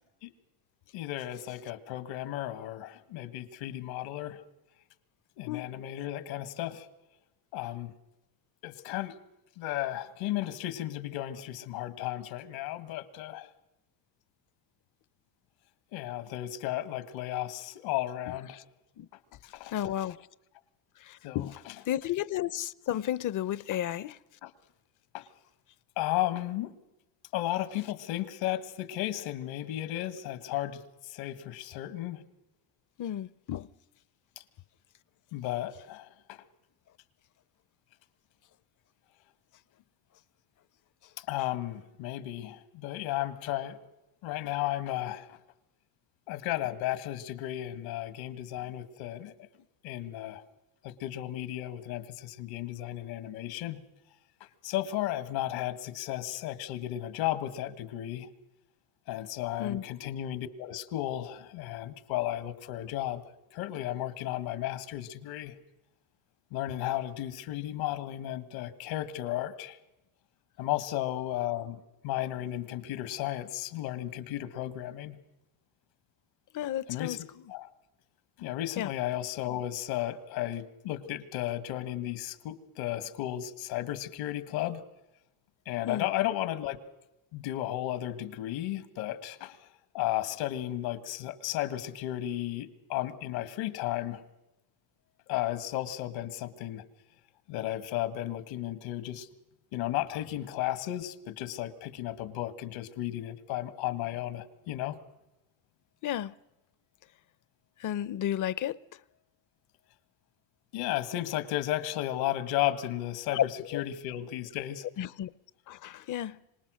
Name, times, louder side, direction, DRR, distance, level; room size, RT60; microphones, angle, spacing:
voice 1, 0.9-4.4 5.4-6.9 7.5-7.9 8.6-9.2 9.6-13.5 15.9-18.6 19.5-19.7 21.2-21.7 24.4-24.5 25.1-25.2 26.0-26.7 27.3-32.2 34.4-34.5 35.3-36.4 41.2-43.8 44.2-45.4 46.3-49.3 49.8-50.4 50.8-53.8 54.6-58.3 59.1-63.2 63.5-65.5 66.5-69.8 70.6-75.2 76.9-77.2 77.5-77.7 78.4-84.8 85.7-86.8 87.3-89.6 89.9-94.2 95.3-96.8 97.5-99.3 99.7-105.0 110.7-113.4 113.7-114.9, left 14 dB, 80° left, 1.9 m, -34 dB
voice 2, 18.3-18.6 19.0-19.1 19.6-20.2 21.0-21.6 21.9-24.2 33.0-33.7 59.6-59.8 76.5-77.2 78.8-78.9 85.9-86.1 106.0-106.3 107.8-108.8 113.3-113.8 115.0-115.3 115.7-116.4, left 11 dB, 45° left, 0.7 m, -32 dB
26.0 x 19.0 x 6.4 m
cardioid pair, 120°, 45 cm